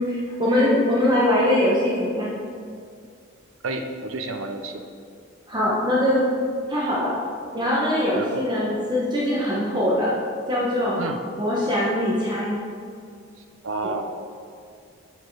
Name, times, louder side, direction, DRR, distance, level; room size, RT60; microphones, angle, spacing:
voice 1, 0.0-2.4 5.5-6.3 6.7-7.1 7.5-10.1 10.5-11.0 11.4-12.6, left 1 dB, 20° right, -6 dB, 1.2 m, -22 dB
voice 2, 3.6-4.9 8.2-8.3 11.0-11.2 13.6-14.0, right 2 dB, 75° right, 6 dB, 0.7 m, -30 dB
7.3 x 6.6 x 4.7 m, 2.2 s
head